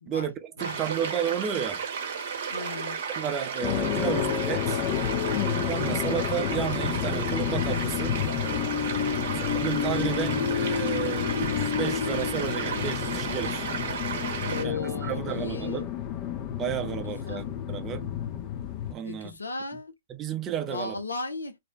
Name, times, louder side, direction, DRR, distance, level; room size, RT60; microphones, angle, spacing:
voice 1, 0.1-1.8 3.2-4.8 5.6-8.2 9.3-13.7 14.6-15.9 16.6-18.1 18.9-19.3 20.1-21.0, right 9 dB, 25° right, 0.5 m, -32 dB
sound 1, 0.6-14.6, right 6 dB, 55° right, 0.8 m, -33 dB
voice 2, 2.5-3.0 5.7-6.2 8.9-9.4 14.4-15.9 17.2-17.5 19.0-19.9 20.7-21.6, left 4 dB, 80° left, 0.6 m, -36 dB
sound 2, 3.6-18.9, left 9 dB, 35° left, 0.4 m, -31 dB
sound 3, 8.4-14.1, left 8 dB, 55° left, 1.0 m, -31 dB
2.6 x 2.1 x 2.4 m
figure-of-eight pair, 120°, 0 cm